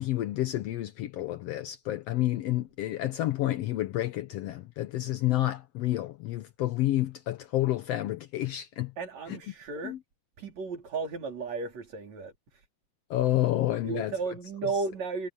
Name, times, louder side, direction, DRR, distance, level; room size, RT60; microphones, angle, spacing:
voice 1, 0.0-8.9 9.8-10.0 13.1-14.1, left 15 dB, 90° left, 1.3 m, -29 dB
voice 2, 9.0-10.0 10.4-12.6 13.8-15.3, right 4 dB, 55° right, 5.2 m, -34 dB
omnidirectional pair, 3.8 m